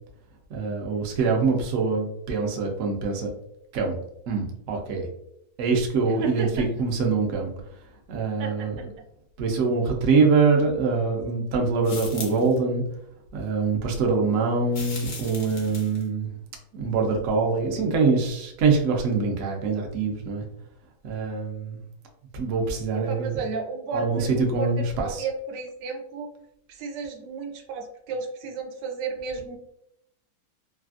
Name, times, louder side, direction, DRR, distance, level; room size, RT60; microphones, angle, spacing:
voice 1, 0.5-3.3 3.7-4.0 4.3-5.1 5.6-7.5 8.1-8.9 9.4-12.8 13.3-16.3 16.7-20.4 21.0-21.8 22.3-23.4 23.9-25.3, right 4 dB, 65° right, 1 dB, 0.8 m, -24 dB
voice 2, 6.1-6.6 8.4-8.9 22.9-24.7 25.0-26.3 26.7-29.6, right 4 dB, 85° right, 3 dB, 1.2 m, -33 dB
sound 1, 11.8-12.6 14.7-16.1, left 3 dB, 85° left, 0.4 m, -38 dB
3.3 x 2.4 x 2.4 m, 0.76 s
omnidirectional pair, 1.8 m